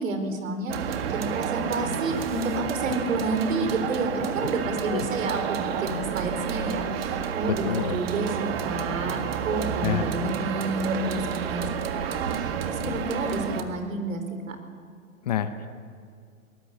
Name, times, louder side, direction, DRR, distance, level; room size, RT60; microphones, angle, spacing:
voice 1, 0.0-9.2 9.4-14.6, right 2 dB, 65° right, 7 dB, 4.6 m, -30 dB
sound 1, 0.7-13.6, right 7 dB, 45° right, 1.8 m, -30 dB
voice 2, 7.5-8.0 9.8-10.0 12.9-13.0 15.3-15.7, left 10 dB, 30° left, 10 dB, 0.9 m, -28 dB
23.0 x 19.5 x 8.4 m, 2.2 s
hypercardioid pair, 170°, 42 cm